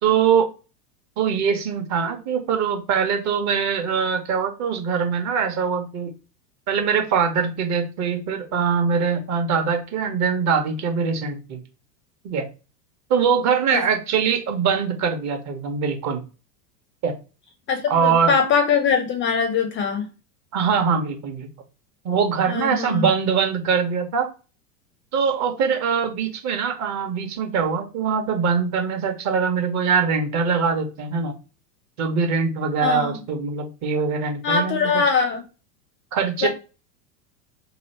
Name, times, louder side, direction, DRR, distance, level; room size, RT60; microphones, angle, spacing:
voice 1, 0.0-0.5 1.2-6.1 6.7-11.6 12.2-12.5 13.1-16.2 17.0-17.1 17.9-18.3 20.5-21.5 22.0-24.3 25.1-31.3 32.0-35.0 36.1-36.5, right 6 dB, 35° right, 5 dB, 1.0 m, -22 dB
voice 2, 17.7-20.1 22.5-23.1 32.8-33.2 34.4-35.4 36.4-36.5, left 5 dB, 25° left, 6 dB, 0.5 m, -22 dB
3.0 x 2.4 x 4.2 m, 0.32 s
hypercardioid pair, 110°, 46 cm